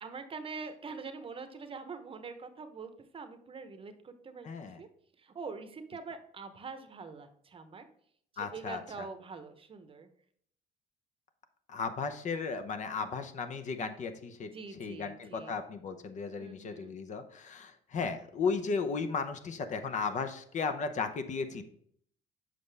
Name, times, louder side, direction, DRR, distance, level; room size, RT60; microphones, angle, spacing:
voice 1, 0.0-4.9 5.2-7.9 8.3-10.1 14.5-15.5 16.4-17.0, right 4 dB, 30° right, 9 dB, 0.9 m, -44 dB
voice 2, 4.4-4.8 8.4-8.8 11.7-21.6, left 5 dB, 45° left, 8 dB, 0.8 m, -35 dB
7.6 x 5.3 x 3.4 m, 0.65 s
cardioid pair, 110°, 17 cm